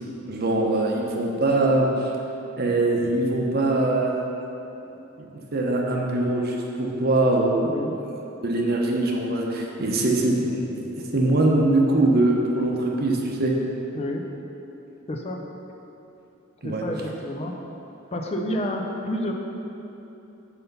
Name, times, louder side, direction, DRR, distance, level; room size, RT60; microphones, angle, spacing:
voice 1, 0.3-1.9 2.6-4.2 5.2-7.6 8.4-13.5 16.6-16.9, right 2 dB, 50° right, 0 dB, 0.9 m, -22 dB
voice 2, 7.6-7.9 13.9-14.3 15.1-15.4 16.6-17.5 18.1-19.3, left 1 dB, 30° left, 1 dB, 0.5 m, -29 dB
5.8 x 5.6 x 5.5 m, 3.0 s
head